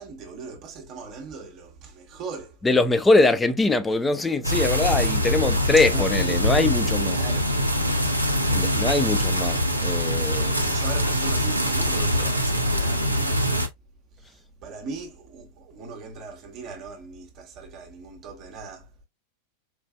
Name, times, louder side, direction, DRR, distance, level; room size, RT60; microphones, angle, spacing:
voice 1, 0.0-2.6 5.9-6.1 7.1-7.5 10.7-13.4 14.1-18.9, right 4 dB, 35° right, 1.0 m, -39 dB
voice 2, 2.6-7.2 8.5-10.8, left 3 dB, 10° left, 0.5 m, -22 dB
sound 1, 4.4-13.7, equal, 85° right, 0.5 m, -23 dB
4.3 x 2.6 x 2.2 m
figure-of-eight pair, 90°, 0 cm